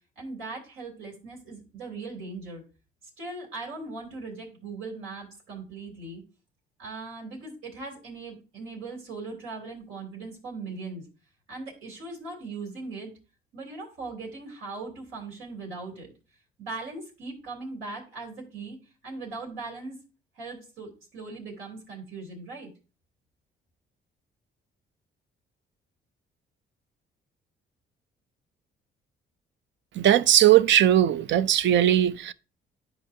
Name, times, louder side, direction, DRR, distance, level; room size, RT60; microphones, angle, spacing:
voice 1, 0.2-2.6 3.2-6.2 6.8-11.1 11.5-13.1 13.5-16.1 16.6-18.8 19.0-20.0 20.3-22.7, right 3 dB, 90° right, 3.1 m, -39 dB
voice 2, 29.9-32.3, right 11 dB, 65° right, 0.5 m, -19 dB
10.5 x 4.7 x 2.7 m
cardioid pair, 90°, 20 cm